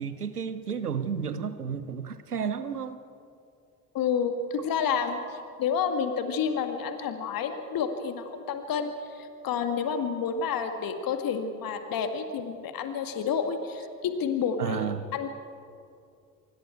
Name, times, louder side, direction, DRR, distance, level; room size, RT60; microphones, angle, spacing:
voice 1, 0.0-3.0 14.6-15.1, right 7 dB, 85° right, 13 dB, 0.9 m, -32 dB
voice 2, 3.9-15.3, left 6 dB, 50° left, 7 dB, 2.1 m, -30 dB
26.0 x 23.0 x 4.6 m, 2.4 s
figure-of-eight pair, 50°, 44 cm